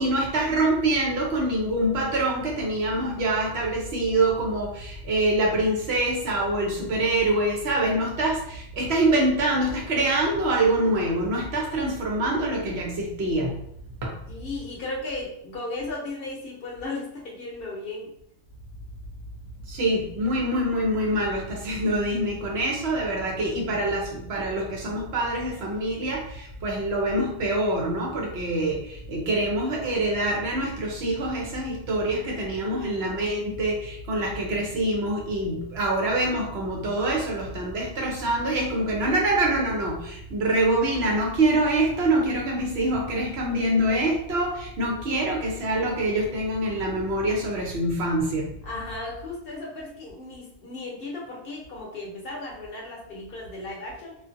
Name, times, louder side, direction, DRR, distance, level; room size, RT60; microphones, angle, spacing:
voice 1, 0.0-13.5 14.0-14.1 19.7-48.5, right 1 dB, 65° right, -2 dB, 1.0 m, -25 dB
voice 2, 14.3-18.1 32.6-33.0 48.6-54.2, left 2 dB, 60° left, -3 dB, 0.9 m, -35 dB
2.6 x 2.5 x 2.5 m, 0.74 s
omnidirectional pair, 1.2 m